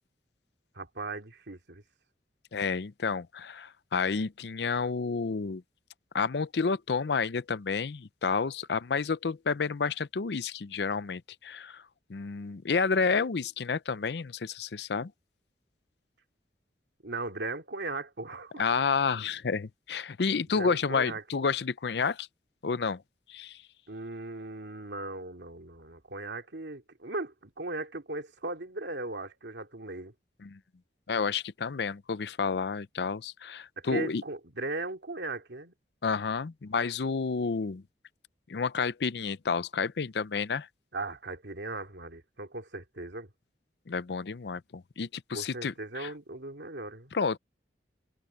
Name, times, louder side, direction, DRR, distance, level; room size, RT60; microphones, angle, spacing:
voice 1, 0.7-1.8 17.0-18.7 20.5-21.2 23.9-30.1 33.8-35.7 40.9-43.3 45.3-47.1, right 2 dB, 85° right, 2.5 m, -38 dB
voice 2, 2.5-5.6 6.1-11.8 12.1-15.1 18.6-22.3 22.6-23.0 23.3-23.6 30.4-30.6 31.1-34.2 36.0-37.8 38.5-40.7 43.9-45.7 46.0-46.1 47.1-47.4, left 5 dB, 70° left, 0.6 m, -30 dB
head